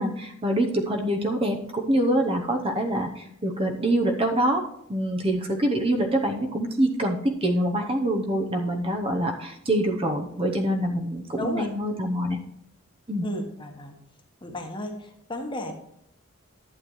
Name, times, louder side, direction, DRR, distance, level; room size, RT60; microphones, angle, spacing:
voice 1, 0.0-4.6 4.9-12.4 13.1-13.2, right 1 dB, 25° right, 3 dB, 0.8 m, -25 dB
voice 2, 11.4-11.7 13.2-13.9 14.4-15.7, left 1 dB, 25° left, 3 dB, 1.2 m, -33 dB
11.5 x 8.5 x 3.1 m, 0.75 s
head